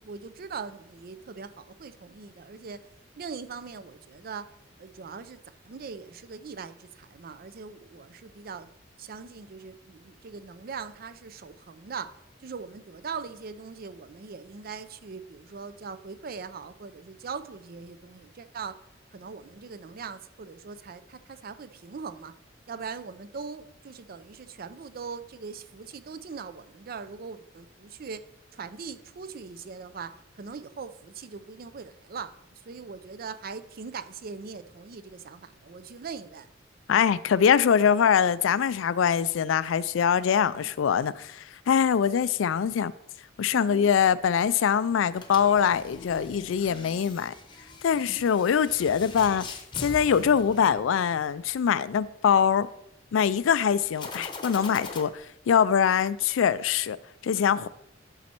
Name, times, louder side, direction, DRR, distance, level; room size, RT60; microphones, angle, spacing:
voice 1, 0.0-2.8 3.2-4.5 4.8-8.7 9.0-18.7 19.1-22.3 22.7-28.2 28.5-32.4 32.7-36.5 40.5-40.7 43.5-43.9 46.7-47.2 48.0-48.2 53.3-53.5, right 5 dB, 50° right, 0.5 m, -41 dB
voice 2, 36.9-42.9 43.4-47.3 47.8-49.5 49.8-52.7 53.1-57.0 57.2-57.7, left 7 dB, 85° left, 0.4 m, -23 dB
sound 1, 45.1-51.3 53.9-55.0, left 3 dB, 25° left, 0.8 m, -42 dB
12.0 x 4.2 x 4.4 m
head